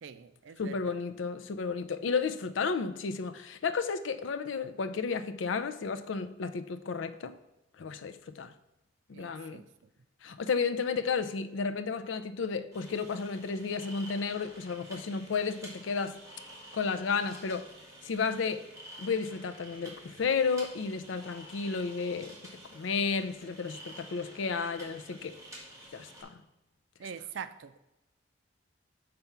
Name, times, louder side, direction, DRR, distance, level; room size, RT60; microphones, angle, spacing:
voice 1, 0.0-0.7 9.1-9.7 27.0-27.8, right 7 dB, 75° right, 0.4 m, -43 dB
voice 2, 0.6-7.3 7.8-8.5 9.1-9.6 10.2-16.2 16.7-17.7 18.0-18.6 19.0-22.4 22.7-25.3 25.9-26.4, left 5 dB, 85° left, 0.5 m, -32 dB
sound 1, 12.7-26.2, right 1 dB, 15° right, 1.7 m, -50 dB
6.8 x 3.4 x 5.7 m
head